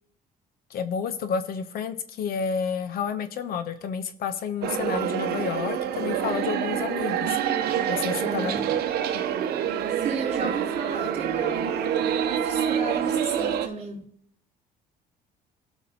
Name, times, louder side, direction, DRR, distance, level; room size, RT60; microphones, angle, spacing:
voice 1, 0.7-7.4 7.9-8.5, left 6 dB, 60° left, 0.7 m, -30 dB
sound 1, 4.6-13.7, right 9 dB, 70° right, 0.8 m, -27 dB
voice 2, 8.2-8.8 10.0-14.0, right 3 dB, 40° right, 3.5 m, -33 dB
15.0 x 6.0 x 2.8 m
cardioid pair, 110°, 17 cm